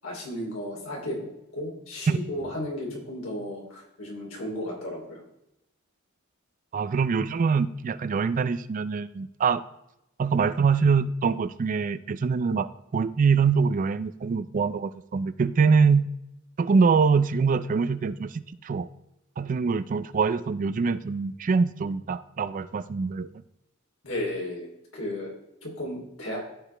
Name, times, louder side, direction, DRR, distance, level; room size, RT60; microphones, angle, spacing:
voice 1, 0.0-5.2 24.0-25.3 25.6-26.4, left 1 dB, 70° left, -2 dB, 3.1 m, -34 dB
voice 2, 6.7-9.6 10.2-16.1 16.6-18.9 19.4-23.3, right 5 dB, 40° right, 14 dB, 0.3 m, -24 dB
14.5 x 4.9 x 3.3 m, 0.85 s
head